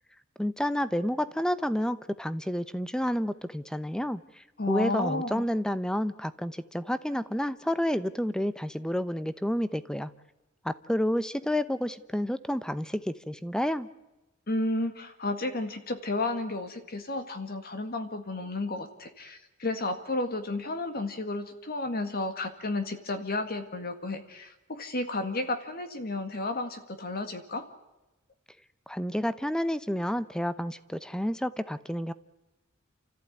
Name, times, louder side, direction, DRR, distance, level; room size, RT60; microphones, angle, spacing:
voice 1, 0.4-10.1 10.6-13.9 28.9-32.1, equal, 5° left, 14 dB, 0.9 m, -30 dB
voice 2, 4.6-5.4 14.5-27.6, left 2 dB, 45° left, 8 dB, 1.9 m, -32 dB
29.5 x 14.5 x 9.4 m, 1.0 s
head